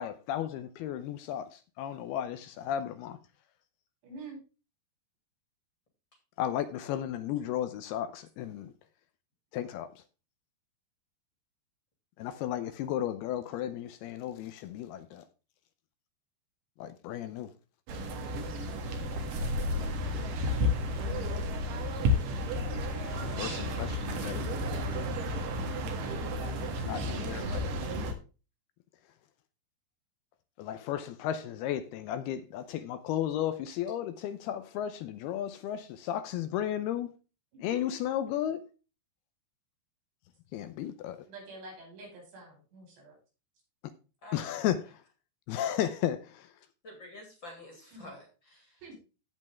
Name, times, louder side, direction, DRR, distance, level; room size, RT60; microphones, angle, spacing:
voice 1, 0.0-3.2 6.4-8.7 9.5-10.0 12.2-15.2 16.8-17.5 23.2-24.7 26.9-27.7 30.6-37.1 37.6-38.6 40.5-41.2 44.3-45.0 45.5-46.5, left 11 dB, 80° left, 2.6 m, -34 dB
voice 2, 4.0-4.4 25.9-26.6 37.5-37.9 41.3-43.2 47.9-48.1 48.8-49.0, right 2 dB, 85° right, 7.2 m, -47 dB
sound 1, 17.9-28.1, left 1 dB, 60° right, 2.9 m, -32 dB
voice 3, 22.9-23.9 44.2-44.7 46.8-48.8, left 2 dB, 30° left, 3.0 m, -50 dB
16.0 x 5.4 x 3.5 m
omnidirectional pair, 4.8 m